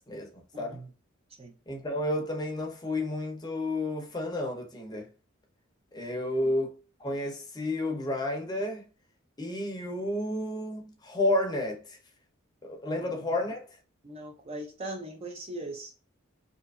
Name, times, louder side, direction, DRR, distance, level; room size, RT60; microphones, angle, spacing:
voice 1, 0.5-0.9 1.4-1.5 6.4-6.5 13.0-13.2 14.0-15.9, right 1 dB, 30° right, 0.5 m, -40 dB
voice 2, 1.7-5.1 5.9-8.8 9.4-12.0 12.6-13.6, left 1 dB, 20° left, 0.6 m, -31 dB
2.7 x 2.4 x 2.3 m
head